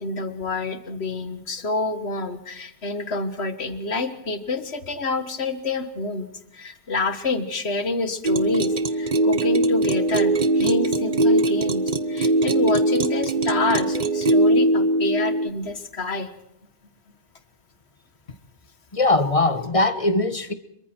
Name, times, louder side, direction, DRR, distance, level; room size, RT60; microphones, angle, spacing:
voice 1, 0.0-6.3 6.5-16.3, left 3 dB, 70° left, 11 dB, 1.8 m, -28 dB
sound 1, 8.2-15.5, right 2 dB, 45° right, 1.1 m, -21 dB
voice 2, 18.9-20.5, left 2 dB, 30° left, 12 dB, 1.3 m, -21 dB
26.0 x 23.0 x 4.5 m, 0.82 s
omnidirectional pair, 1.1 m